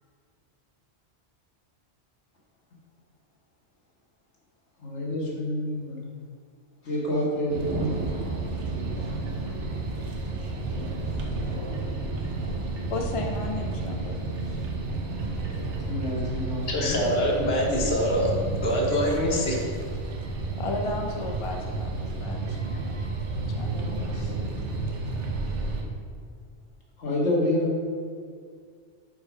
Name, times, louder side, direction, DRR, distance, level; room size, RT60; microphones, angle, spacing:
voice 1, 4.8-6.0 6.8-8.0 9.0-9.1 14.7-14.9 15.9-17.0 27.0-27.7, left 1 dB, 85° left, -4 dB, 1.8 m, -28 dB
sound 1, 7.5-25.8, right 3 dB, 85° right, 1.1 m, -31 dB
voice 2, 12.9-14.2 20.6-22.9 23.5-24.4, left 2 dB, 35° left, 2 dB, 0.6 m, -34 dB
voice 3, 16.7-18.3 18.6-19.6, equal, 60° left, -2 dB, 1.4 m, -24 dB
5.6 x 4.7 x 4.9 m, 2.1 s
omnidirectional pair, 1.2 m